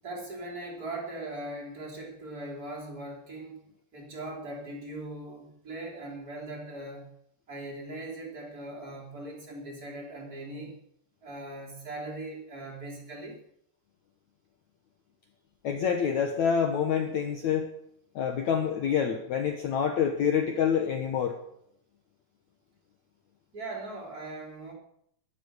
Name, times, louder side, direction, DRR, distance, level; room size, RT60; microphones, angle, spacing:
voice 1, 0.0-3.6 3.9-7.1 7.5-10.8 11.2-13.4 23.5-24.7, right 2 dB, 20° right, -1 dB, 3.7 m, -40 dB
voice 2, 15.6-17.7 18.1-21.4, left 7 dB, 80° left, 4 dB, 1.6 m, -27 dB
12.5 x 12.0 x 6.6 m, 0.73 s
omnidirectional pair, 5.1 m